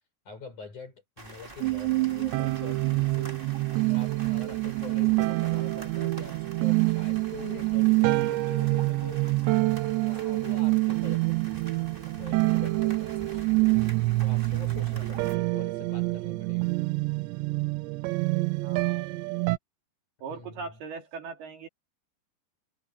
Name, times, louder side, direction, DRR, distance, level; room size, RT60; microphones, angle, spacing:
voice 1, 0.3-3.4 3.9-9.4 10.0-11.5 12.1-13.4 14.2-16.7 20.3-20.8, left 4 dB, 45° left, 7.8 m, -45 dB
sound 1, 1.2-15.4, right 2 dB, 25° right, 1.3 m, -47 dB
sound 2, 1.6-19.6, right 23 dB, 90° right, 3.0 m, -26 dB
voice 2, 15.0-15.3 18.6-19.5 20.2-21.7, right 5 dB, 65° right, 4.7 m, -41 dB
omnidirectional pair, 5.1 m